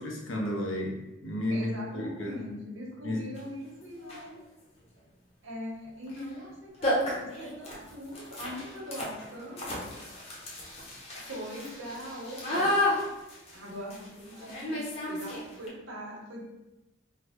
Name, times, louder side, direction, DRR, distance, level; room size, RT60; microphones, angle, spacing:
voice 1, 0.0-2.4 3.0-3.2, left 1 dB, 90° left, -1 dB, 0.8 m, -32 dB
voice 2, 1.5-4.4 5.4-10.4 11.3-12.7 13.5-16.4, equal, 90° right, -4 dB, 1.0 m, -41 dB
sound 1, 3.3-3.4 4.0-4.4 6.1-6.2 6.5-6.6 6.8-15.7, left 1 dB, 30° left, 0.8 m, -33 dB
3.3 x 2.1 x 3.6 m, 1.0 s
head